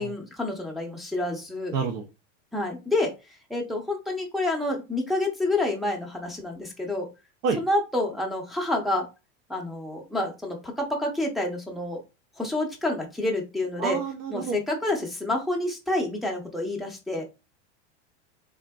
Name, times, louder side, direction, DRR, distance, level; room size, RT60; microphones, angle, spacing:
voice 1, 0.0-1.7 2.5-3.1 3.5-7.1 7.6-9.1 9.5-12.0 12.4-14.0 14.3-17.2, left 2 dB, ahead, -1 dB, 0.5 m, -28 dB
voice 2, 1.7-2.0 7.4-7.6 13.8-14.6, right 5 dB, 85° right, 2 dB, 0.7 m, -28 dB
3.5 x 2.5 x 2.2 m, 0.27 s
supercardioid pair, 140°, 35 cm